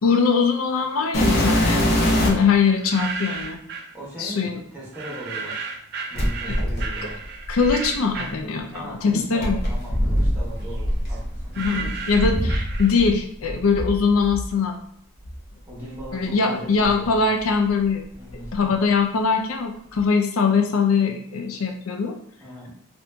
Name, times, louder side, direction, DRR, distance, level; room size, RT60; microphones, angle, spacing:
voice 1, 0.0-1.9 2.2-3.6 4.2-4.6 6.5-6.6 7.0-7.1 7.5-9.6 11.6-14.8 16.1-18.0 18.5-22.2, left 5 dB, 85° left, 4 dB, 0.5 m, -22 dB
sound 1, 1.1-2.5 3.4-3.5 6.1-8.2 9.4-13.1 13.4-14.5 15.2-15.4 16.0-16.1 16.8-17.9 18.1-18.6 19.9-20.0, equal, 50° left, 0.8 m, -24 dB
sound 2, 2.7-3.9 4.9-9.2 9.5-13.3, right 4 dB, 50° right, 0.4 m, -34 dB
voice 2, 3.9-5.6 6.1-7.2 8.7-12.0 15.7-17.2 18.1-18.7 22.4-22.7, right 1 dB, 10° right, -8 dB, 1.2 m, -39 dB
2.8 x 2.6 x 3.3 m, 0.65 s
head